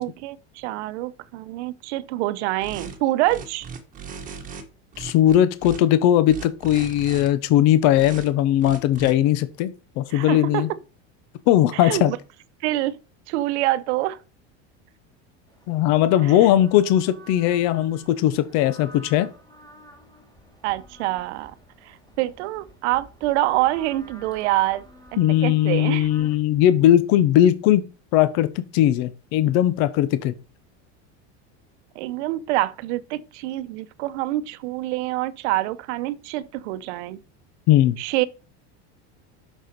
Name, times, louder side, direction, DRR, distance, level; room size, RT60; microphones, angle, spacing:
voice 1, 0.0-3.7 10.1-10.8 11.7-12.2 12.6-13.0 13.3-14.2 20.6-21.5 21.9-24.8 25.3-26.1 31.9-37.2 38.0-38.2, right 16 dB, 70° right, 0.8 m, -26 dB
sound 1, 2.6-3.0 3.3-4.6 4.9-5.8 6.3-7.3 7.9-8.3 8.6-9.1, right 6 dB, 25° right, 1.6 m, -37 dB
voice 2, 5.0-10.7 11.5-12.1 15.7-19.3 25.2-27.8 28.1-30.3 37.7-38.0, left 12 dB, 50° left, 0.9 m, -19 dB
sound 2, 15.5-26.4, equal, 10° left, 3.6 m, -49 dB
6.6 x 6.4 x 5.2 m
supercardioid pair, 150°, 35 cm